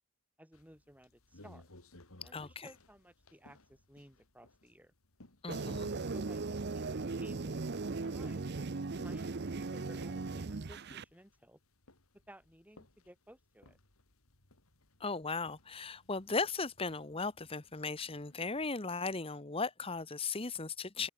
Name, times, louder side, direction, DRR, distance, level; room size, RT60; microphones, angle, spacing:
voice 1, 0.4-1.7 2.2-4.9 6.1-8.5 9.0-9.3 9.6-11.6 12.3-13.8, right 1 dB, 5° right, 3.5 m, -57 dB
sound 1, 0.5-18.7, left 1 dB, 75° left, 3.4 m, -63 dB
voice 2, 2.3-2.7 5.4-5.9 15.0-21.1, left 4 dB, 25° left, 1.2 m, -37 dB
sound 2, 5.5-11.0, right 3 dB, 50° right, 0.7 m, -38 dB
head